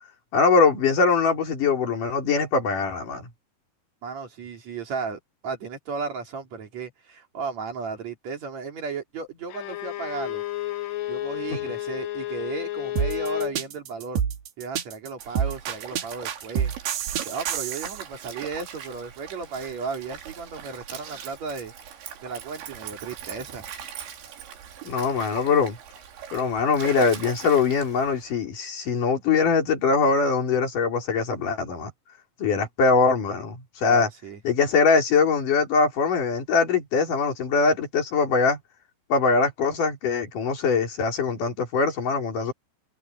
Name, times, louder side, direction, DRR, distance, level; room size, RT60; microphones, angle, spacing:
voice 1, 0.3-3.3 11.5-11.7 24.9-25.8 26.3-31.9 32.4-34.1 34.4-38.6 39.1-42.5, left 5 dB, 50° left, 5.5 m, -22 dB
voice 2, 4.0-10.4 11.1-14.2 14.6-16.7 17.3-21.7 22.2-23.6 33.8-34.4, right 5 dB, 45° right, 3.8 m, -35 dB
Bowed string instrument, 9.5-13.6, left 15 dB, 75° left, 3.5 m, -31 dB
sound 1, 13.0-18.0, right 8 dB, 70° right, 3.9 m, -27 dB
Stream, 15.2-28.3, right 9 dB, 85° right, 5.1 m, -41 dB
omnidirectional pair, 5.0 m